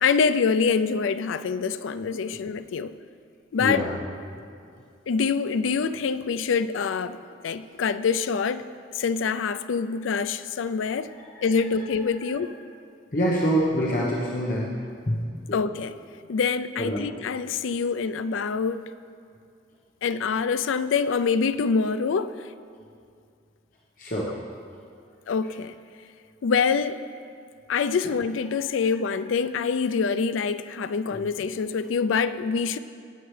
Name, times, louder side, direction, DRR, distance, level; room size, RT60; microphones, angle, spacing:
voice 1, 0.0-2.9 3.5-3.9 5.1-7.2 7.4-8.6 8.9-11.1 11.4-12.6 15.5-15.9 16.3-18.8 20.0-22.3 24.3-24.4 25.3-25.7 26.4-27.0 27.7-32.8, left 5 dB, 90° left, 0.4 m, -25 dB
voice 2, 3.6-3.9 11.1-11.6 13.1-14.7 15.1-15.6 16.8-17.1 24.0-24.3 28.0-28.1 31.1-31.3, equal, 45° left, 1.0 m, -26 dB
18.0 x 7.9 x 3.3 m
head